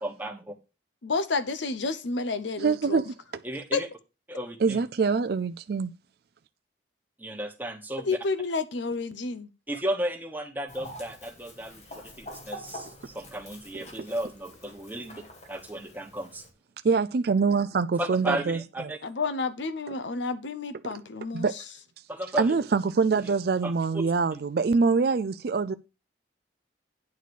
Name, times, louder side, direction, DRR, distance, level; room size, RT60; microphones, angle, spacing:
voice 1, 0.0-0.5 3.4-3.9 4.3-4.8 7.2-8.2 9.7-15.2 15.5-16.4 18.0-19.0 22.1-22.6 23.2-23.3 23.6-24.0 24.3-24.4, right 1 dB, 10° right, 1.2 m, -34 dB
voice 2, 1.0-3.0 3.7-3.8 8.1-9.5 19.0-21.5, left 4 dB, 75° left, 0.7 m, -30 dB
voice 3, 2.6-3.1 4.6-5.9 16.8-18.6 21.3-21.5 22.4-25.7, right 4 dB, 55° right, 0.4 m, -24 dB
Chicken rooster, 10.7-16.5, left 1 dB, 35° left, 1.7 m, -46 dB
9.6 x 4.2 x 6.2 m
head